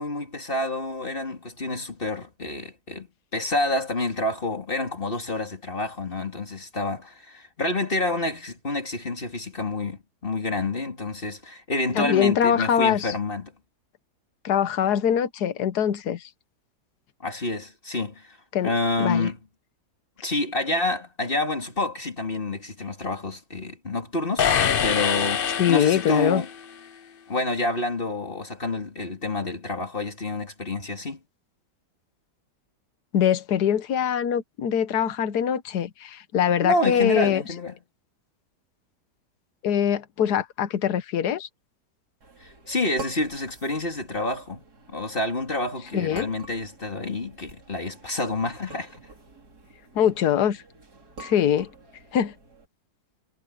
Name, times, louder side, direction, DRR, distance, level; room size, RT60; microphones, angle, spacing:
voice 1, 0.0-3.1 3.3-13.5 17.2-18.4 18.6-19.4 20.2-24.5 24.8-26.5 27.3-31.2 36.6-37.7 42.4-44.6 44.9-49.0, left 2 dB, 30° left, 2.9 m, -28 dB
voice 2, 11.9-13.1 14.4-16.3 18.5-18.7 19.0-19.3 25.6-26.4 33.1-37.4 39.6-41.5 45.9-46.3 49.9-50.6 51.2-51.7 52.1-52.3, left 9 dB, 70° left, 1.6 m, -23 dB
sound 1, 24.4-26.6, left 8 dB, 55° left, 0.6 m, -24 dB
sound 2, 42.2-52.7, right 3 dB, 65° right, 3.8 m, -47 dB
omnidirectional pair, 1.8 m